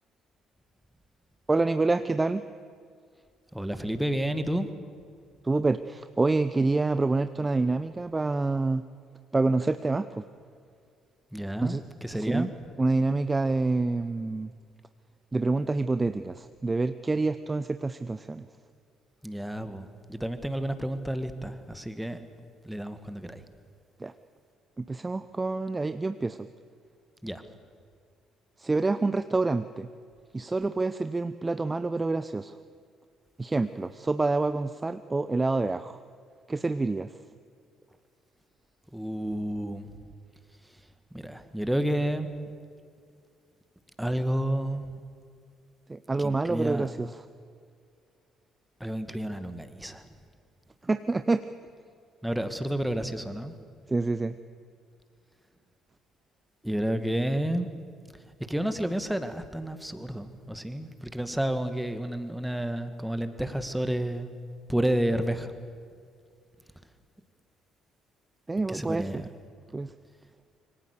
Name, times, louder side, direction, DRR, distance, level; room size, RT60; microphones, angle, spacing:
voice 1, 1.5-2.4 5.4-8.8 9.3-10.2 11.6-11.8 12.1-12.5 12.8-14.5 15.3-18.5 24.0-24.1 24.8-26.5 28.6-29.9 30.3-32.5 33.4-36.0 36.5-37.1 45.9-47.1 50.8-51.4 53.9-54.3 68.5-69.2 69.7-69.9, right 3 dB, 20° right, 12 dB, 0.8 m, -27 dB
voice 2, 3.5-4.7 11.3-12.5 19.2-22.2 22.6-23.4 27.2-27.4 38.9-39.9 41.1-42.3 44.0-44.9 46.2-46.9 48.8-50.1 52.2-53.5 56.6-57.7 58.5-64.3 64.7-65.5 68.6-69.3, right 1 dB, 5° right, 9 dB, 2.2 m, -30 dB
26.5 x 24.0 x 6.9 m, 2.2 s
figure-of-eight pair, 45°, 0 cm